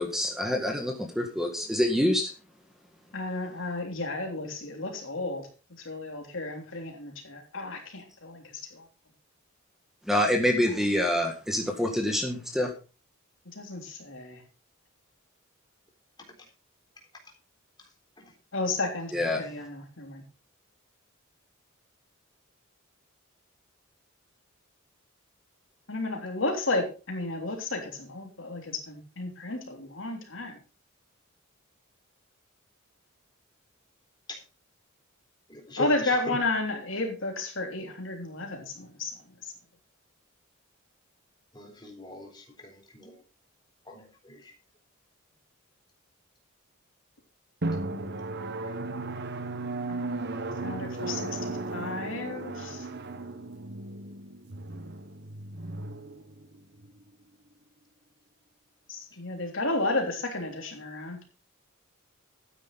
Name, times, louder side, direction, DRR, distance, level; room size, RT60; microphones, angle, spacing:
voice 1, 0.0-2.3 10.1-12.7 19.1-19.4, left 1 dB, ahead, 3 dB, 1.7 m, -26 dB
voice 2, 3.1-5.5 5.8-8.8 13.6-14.4 18.5-20.2 25.9-30.6 35.8-39.2 49.9-50.1 50.6-52.9 58.9-61.2, left 2 dB, 65° left, 2 dB, 3.4 m, -32 dB
voice 3, 35.5-35.9 36.3-36.4 41.5-42.4 42.9-43.1 43.9-44.4, equal, 20° left, 2 dB, 3.8 m, -40 dB
Drum, 47.6-56.9, right 2 dB, 55° right, 1.1 m, -35 dB
12.5 x 9.8 x 4.0 m, 0.34 s
head